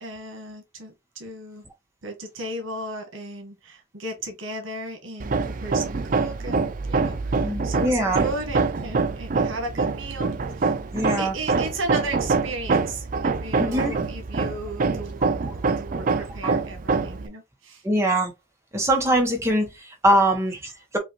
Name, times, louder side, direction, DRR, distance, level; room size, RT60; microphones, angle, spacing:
voice 1, 0.0-1.7 2.0-10.7 11.2-15.2 15.5-17.8, right 2 dB, 85° right, 1.2 m, -35 dB
Hammer, 5.2-17.3, right 4 dB, 45° right, 0.4 m, -25 dB
voice 2, 7.4-8.2 10.9-11.3 13.6-14.0 17.8-18.3 18.7-21.0, right 1 dB, 15° right, 0.9 m, -22 dB
5.5 x 2.4 x 2.9 m
head